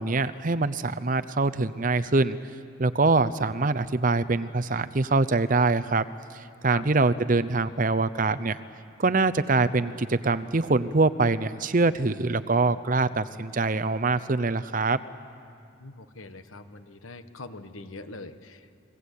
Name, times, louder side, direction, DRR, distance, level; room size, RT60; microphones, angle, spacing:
voice 1, 0.0-2.4 2.8-6.0 6.6-8.6 9.0-15.0, right 3 dB, 40° right, 13 dB, 0.7 m, -24 dB
voice 2, 15.7-18.7, left 3 dB, 85° left, 9 dB, 1.4 m, -43 dB
29.0 x 21.5 x 8.4 m, 2.5 s
head